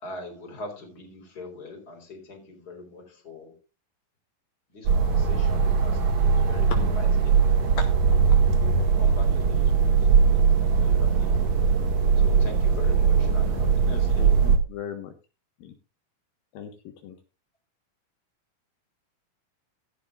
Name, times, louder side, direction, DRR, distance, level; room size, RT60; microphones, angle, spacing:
voice 1, 0.0-3.6 4.7-7.8 8.6-10.3 10.6-11.3 12.2-14.3, left 2 dB, 25° left, 4.4 m, -43 dB
sound 1, 4.9-14.6, right 6 dB, 50° right, 2.9 m, -20 dB
voice 2, 13.8-15.1 15.6-15.7 16.5-16.7 17.0-17.2, left 8 dB, 75° left, 3.1 m, -37 dB
16.0 x 12.0 x 2.5 m
omnidirectional pair, 4.3 m